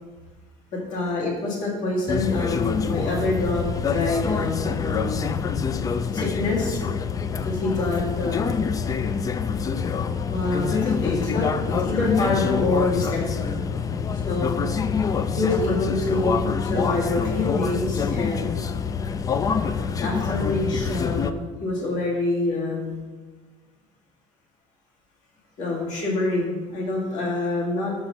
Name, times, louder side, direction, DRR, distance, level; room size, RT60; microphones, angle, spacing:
voice 1, 0.7-5.2 6.1-6.8 7.4-8.7 10.3-13.6 14.1-14.7 15.4-18.7 20.0-23.0 25.6-27.9, left 2 dB, 70° left, -3 dB, 2.0 m, -26 dB
sound 1, 2.1-21.3, left 6 dB, 25° left, 0.3 m, -26 dB
5.7 x 5.5 x 5.7 m, 1.3 s
cardioid pair, 125°, 13 cm